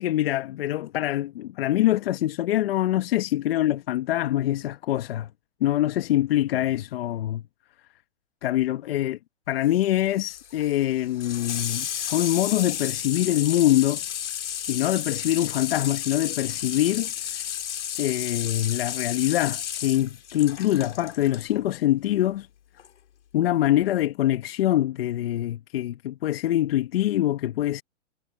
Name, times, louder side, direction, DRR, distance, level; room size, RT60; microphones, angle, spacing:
voice 1, 0.0-5.3 5.6-7.4 8.4-9.2 9.5-14.0 14.7-17.1 18.0-22.5 23.3-27.8, left 13 dB, 55° left, 1.1 m, -24 dB
Water tap faucet / Sink (filling or washing), 9.6-21.5 22.8-22.9, left 10 dB, 80° left, 4.5 m, -33 dB
hypercardioid pair, 155°, 35 cm